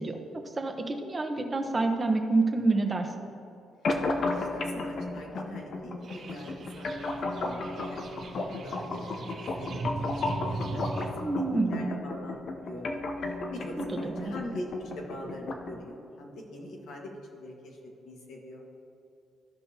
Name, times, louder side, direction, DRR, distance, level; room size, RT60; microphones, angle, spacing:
voice 1, 0.0-3.1 11.2-12.0 13.8-14.3, right 3 dB, 25° right, 4 dB, 1.0 m, -28 dB
sound 1, 3.8-15.8, left 2 dB, 55° left, 0.9 m, -34 dB
voice 2, 4.1-8.0 8.3-9.0 9.3-11.1 11.7-13.0 13.5-14.7 15.0-17.8 18.0-18.6, left 1 dB, 80° left, -1 dB, 1.7 m, -43 dB
sound 2, 6.0-11.0, right 3 dB, 65° right, 1.9 m, -39 dB
15.0 x 5.3 x 2.9 m, 2.7 s
cardioid pair, 90°, 0 cm